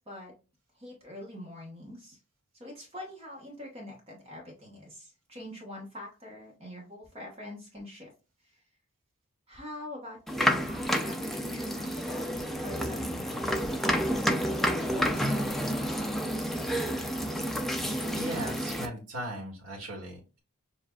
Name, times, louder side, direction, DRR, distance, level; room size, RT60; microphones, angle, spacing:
voice 1, 0.7-2.2 2.5-8.1 8.5-8.6 9.5-12.3 12.6-14.0 14.5-16.2, left 1 dB, 25° right, -1 dB, 1.2 m, -44 dB
sound 1, 10.3-18.9, equal, ahead, 0.4 m, -30 dB
voice 2, 18.1-20.4, right 1 dB, 70° right, -1 dB, 1.6 m, -38 dB
7.0 x 2.6 x 2.3 m, 0.31 s
head